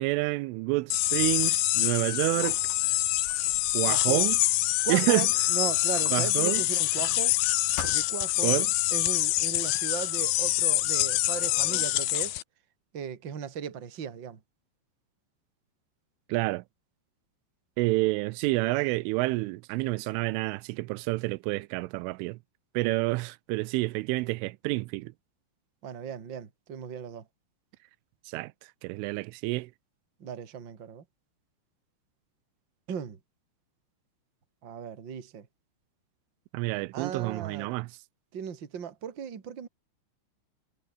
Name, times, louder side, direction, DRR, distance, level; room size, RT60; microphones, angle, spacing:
voice 1, 0.0-2.6 3.7-4.4 4.9-5.3 6.1-6.6 8.4-8.7 16.3-16.6 17.8-22.4 22.7-25.1 28.3-28.5 28.8-29.7 36.5-37.9, right 22 dB, 90° right, 3.2 m, -28 dB
sound 1, 0.9-12.4, left 17 dB, 85° left, 2.1 m, -26 dB
Squeak, 1.7-5.5 6.0-7.5 7.8-8.3, left 6 dB, 65° left, 7.3 m, -45 dB
voice 2, 3.8-4.2 4.8-7.4 7.8-8.6 8.9-12.4 12.9-14.4 25.8-27.3 30.2-31.0 32.9-33.2 34.6-35.5 36.9-37.7 38.3-39.7, right 8 dB, 35° right, 2.1 m, -37 dB
omnidirectional pair, 5.5 m